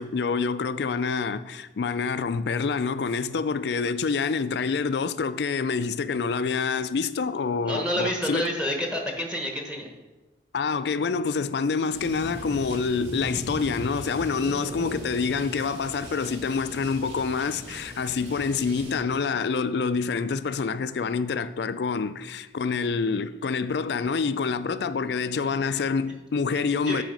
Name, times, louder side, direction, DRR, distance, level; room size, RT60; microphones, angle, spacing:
voice 1, 0.0-8.5 10.5-27.0, left 5 dB, 70° left, 0.4 m, -27 dB
voice 2, 7.6-9.9 26.9-27.0, equal, 5° right, 1.0 m, -28 dB
sound 1, 11.9-19.0, equal, 85° right, 2.3 m, -39 dB
8.9 x 5.0 x 5.2 m
head